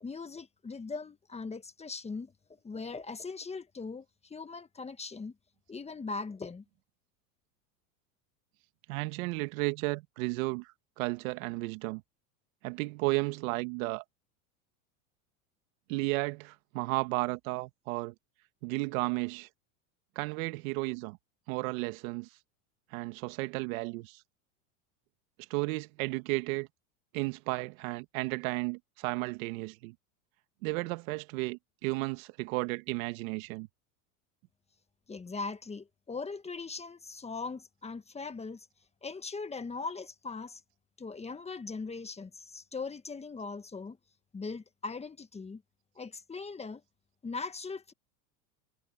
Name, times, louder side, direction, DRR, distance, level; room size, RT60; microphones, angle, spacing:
voice 1, 0.0-2.3 2.6-5.3 5.7-6.6 35.1-38.7 39.0-40.6 41.0-44.0 44.3-45.6 45.9-46.8 47.2-47.9, left 4 dB, 15° left, 1.5 m, -40 dB
voice 2, 8.9-12.0 12.6-14.0 15.9-18.1 18.6-19.5 20.2-21.2 21.5-22.3 22.9-24.2 25.5-26.7 27.1-29.9 30.6-33.7, right 24 dB, 65° right, 1.7 m, -33 dB
supercardioid pair, 115°, 44 cm